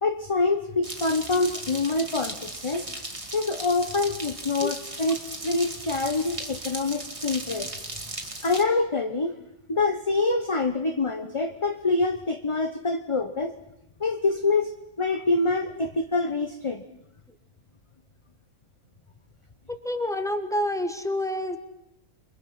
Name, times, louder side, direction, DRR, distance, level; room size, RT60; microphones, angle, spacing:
voice 1, 0.0-2.9 3.3-7.7 8.4-9.3 9.7-13.5 14.0-16.8, left 3 dB, 25° left, 7 dB, 0.9 m, -26 dB
sound 1, 0.8-8.6, right 1 dB, 20° right, 2.6 m, -37 dB
voice 2, 19.7-21.6, left 1 dB, ahead, 8 dB, 1.7 m, -28 dB
29.0 x 22.5 x 5.8 m, 0.80 s
omnidirectional pair, 1.6 m